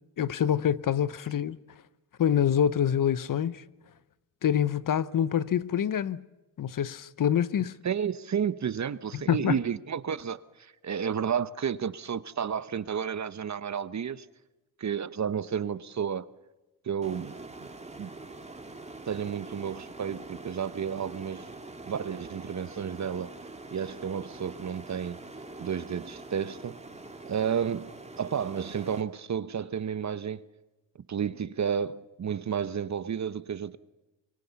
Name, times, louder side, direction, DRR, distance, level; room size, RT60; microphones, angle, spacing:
voice 1, 0.2-1.6 2.2-3.6 4.4-6.2 6.6-7.7 9.1-9.6, left 9 dB, 45° left, 0.8 m, -26 dB
voice 2, 7.8-14.3 14.8-16.3 16.8-17.7 18.0-18.1 19.1-21.5 21.9-23.3 23.7-25.2 25.6-26.8 27.3-27.9 28.2-30.4 31.1-33.8, right 7 dB, 40° right, 0.9 m, -31 dB
sound 1, 17.0-29.0, right 2 dB, 15° right, 2.1 m, -44 dB
24.5 x 24.0 x 7.0 m
cardioid pair, 80°, 44 cm